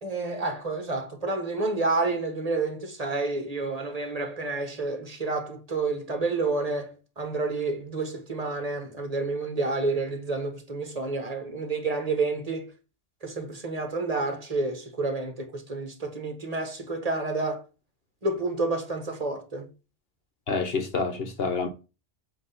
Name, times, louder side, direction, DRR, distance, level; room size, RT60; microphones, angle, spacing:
voice 1, 0.0-12.7 13.2-17.6 18.2-19.7, right 3 dB, 30° right, 1.5 m, -29 dB
voice 2, 20.5-21.7, left 4 dB, 55° left, 1.3 m, -28 dB
7.7 x 3.0 x 5.7 m
omnidirectional pair, 1.2 m